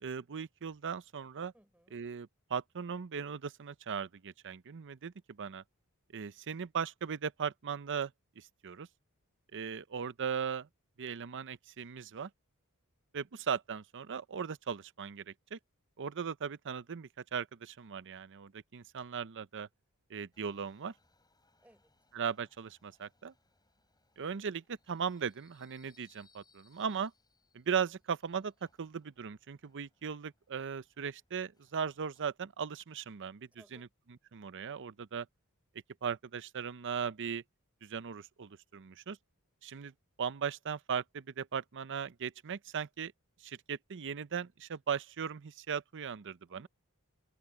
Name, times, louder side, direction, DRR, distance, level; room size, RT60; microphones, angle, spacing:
voice 1, 0.0-1.5 1.9-5.6 6.1-8.1 8.4-8.9 9.5-10.7 11.0-12.3 13.1-15.6 16.0-19.7 20.1-20.9 22.1-23.3 24.2-27.1 27.5-28.5 28.8-33.9 34.3-35.3 36.0-37.4 37.8-39.2 39.6-39.9 40.2-43.1 43.4-46.7, right 7 dB, 55° right, 0.6 m, -38 dB
voice 2, 1.5-2.0 21.6-21.9 33.5-33.9 46.5-46.7, right 1 dB, 5° right, 6.2 m, -64 dB
Subway metro underground, 20.3-32.3, left 4 dB, 20° left, 6.6 m, -72 dB
head